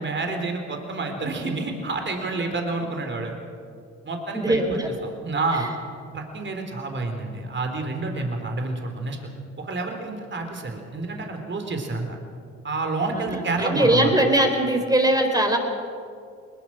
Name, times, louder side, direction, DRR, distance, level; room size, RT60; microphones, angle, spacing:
voice 1, 0.0-3.3 4.0-5.7 6.1-9.2 9.6-12.2 12.6-14.1, right 3 dB, 35° right, 4 dB, 4.0 m, -29 dB
voice 2, 4.3-4.9 13.1-15.6, right 1 dB, 10° right, 4 dB, 4.0 m, -21 dB
20.5 x 20.5 x 6.3 m, 2.3 s
supercardioid pair, 65°, 32 cm